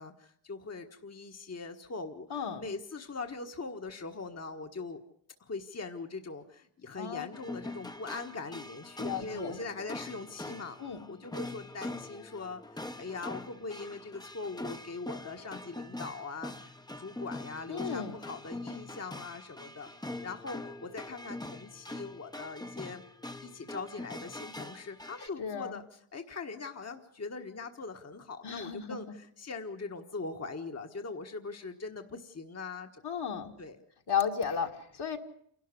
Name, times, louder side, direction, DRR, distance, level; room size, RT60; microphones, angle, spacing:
voice 1, 0.0-5.0 5.4-10.8 11.1-19.9 20.2-23.0 23.4-33.0 33.6-33.8, left 4 dB, 30° left, 5 dB, 1.5 m, -41 dB
voice 2, 2.3-2.7 7.0-7.3 9.0-9.6 10.8-11.0 17.7-18.2 25.4-25.8 28.4-29.0 33.0-33.5 34.1-35.2, left 7 dB, 50° left, 3 dB, 2.0 m, -34 dB
sound 1, 7.3-25.3, left 2 dB, 10° left, 1.0 m, -43 dB
27.5 x 12.5 x 9.8 m, 0.68 s
cardioid pair, 90°, 49 cm